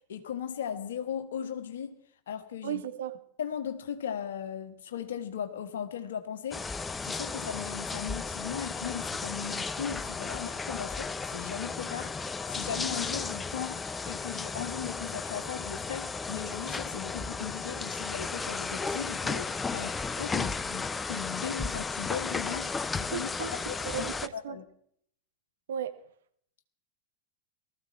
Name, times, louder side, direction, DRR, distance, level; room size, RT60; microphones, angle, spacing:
voice 1, 0.1-2.0 2.3-2.8 3.4-23.3 23.7-24.6, left 8 dB, 65° left, 8 dB, 1.6 m, -38 dB
voice 2, 2.6-3.2 23.1-23.5 23.8-24.6 25.7-25.9, right 9 dB, 65° right, 10 dB, 1.2 m, -35 dB
sound 1, 6.5-24.3, left 4 dB, 15° left, 0.5 m, -34 dB
19.0 x 14.0 x 4.4 m, 0.65 s
figure-of-eight pair, 90°, 0 cm